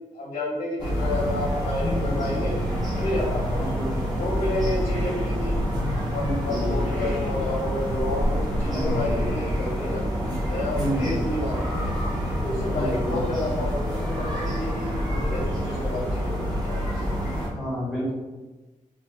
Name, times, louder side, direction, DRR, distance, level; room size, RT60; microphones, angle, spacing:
voice 1, 0.1-2.5 2.8-5.5 6.1-10.0 10.5-11.9 12.4-17.1, left 1 dB, 65° left, -6 dB, 0.8 m, -31 dB
sound 1, 0.8-17.5, equal, 30° right, 1.0 m, -27 dB
voice 2, 1.8-2.1 3.6-3.9 5.7-5.9 6.2-7.2 8.7-9.5 10.7-11.2 12.7-13.2 17.5-18.1, equal, 5° right, -7 dB, 1.0 m, -30 dB
3.4 x 2.0 x 3.2 m, 1.2 s
wide cardioid pair, 125°, 14 cm